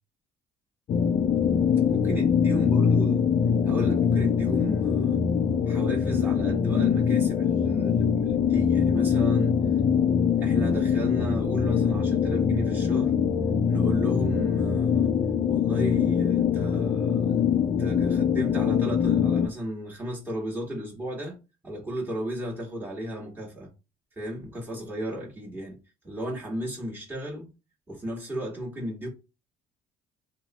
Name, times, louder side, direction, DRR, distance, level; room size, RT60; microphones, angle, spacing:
sound 1, 0.9-19.5, left 7 dB, 40° left, 0.4 m, -23 dB
voice 1, 1.9-3.3 3.6-5.2 5.7-9.6 10.4-13.1 13.7-15.1 15.5-17.4 17.7-21.4 21.6-23.7 24.2-25.8 26.0-27.5 27.9-29.1, equal, 10° right, 1.5 m, -34 dB
3.0 x 2.1 x 2.9 m
cardioid pair, 110°, 17 cm